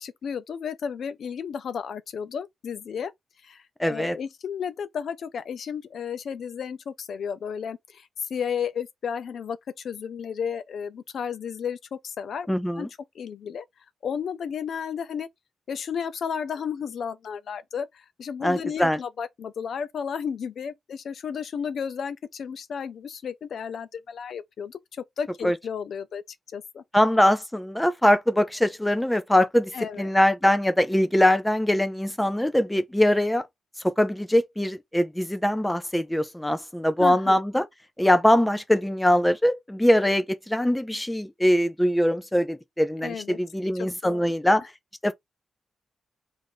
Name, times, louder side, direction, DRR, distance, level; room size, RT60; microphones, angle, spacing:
voice 1, 0.0-3.1 3.4-12.5 12.8-12.9 13.1-13.6 14.0-15.3 15.7-26.2 26.5-26.8 29.7-30.1 37.0-37.3 43.0-43.4 43.7-44.3, left 7 dB, 60° left, 0.6 m, -33 dB
voice 2, 3.8-4.2 12.5-12.9 18.4-19.0 25.4-25.6 26.9-33.5 33.8-37.7 38.0-44.7 45.0-45.1, left 1 dB, 5° left, 0.4 m, -22 dB
4.9 x 2.6 x 3.8 m
wide cardioid pair, 170°, 0 cm